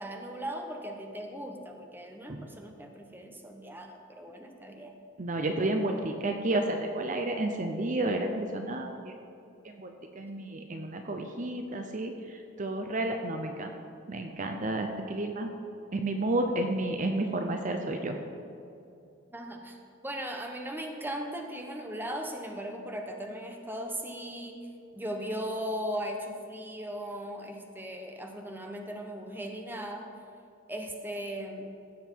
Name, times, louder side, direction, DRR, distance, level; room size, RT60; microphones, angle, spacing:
voice 1, 0.0-4.9 19.3-19.8 20.0-24.6 25.0-30.1 30.7-31.7, equal, 10° right, 3 dB, 1.0 m, -38 dB
voice 2, 5.2-9.1 9.6-13.7 14.1-15.5 15.9-18.2, right 2 dB, 40° right, 5 dB, 0.7 m, -31 dB
15.5 x 7.4 x 4.6 m, 2.6 s
head